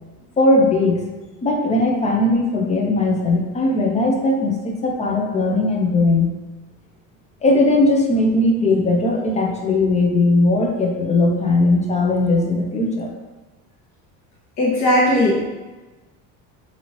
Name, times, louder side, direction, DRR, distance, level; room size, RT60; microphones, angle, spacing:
voice 1, 0.4-1.0 1.4-6.4 7.4-13.1, left 2 dB, 20° left, 0 dB, 0.4 m, -18 dB
voice 2, 14.6-15.5, left 1 dB, 45° left, -6 dB, 0.9 m, -17 dB
2.7 x 2.6 x 3.0 m, 1.2 s
cardioid pair, 125°, 36 cm